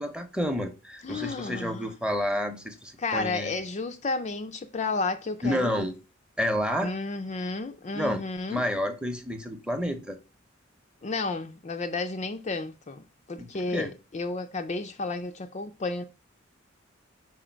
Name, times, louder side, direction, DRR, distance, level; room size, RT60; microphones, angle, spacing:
voice 1, 0.0-3.6 5.4-5.9 6.4-6.9 7.9-8.2 8.5-10.2 13.4-13.9, equal, 5° right, 0.8 m, -30 dB
voice 2, 1.0-1.9 3.0-5.9 6.8-8.6 11.0-16.0, left 3 dB, 35° left, 0.5 m, -32 dB
5.0 x 4.6 x 4.5 m
head